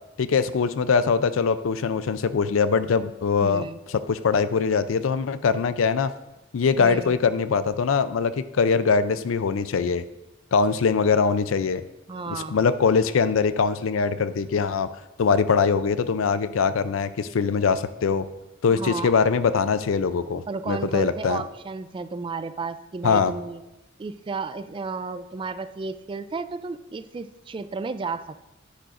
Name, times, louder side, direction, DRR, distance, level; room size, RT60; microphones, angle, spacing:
voice 1, 0.2-3.7 4.1-6.1 6.5-10.0 10.5-11.8 12.3-14.9 15.2-18.3 18.6-21.4 23.0-23.3, left 5 dB, 85° left, 13 dB, 0.4 m, -22 dB
voice 2, 3.4-3.8 6.8-7.2 12.1-12.6 18.7-19.2 20.5-23.6 24.0-28.4, right 4 dB, 25° right, 12 dB, 0.3 m, -33 dB
9.9 x 9.4 x 2.5 m, 1.0 s
head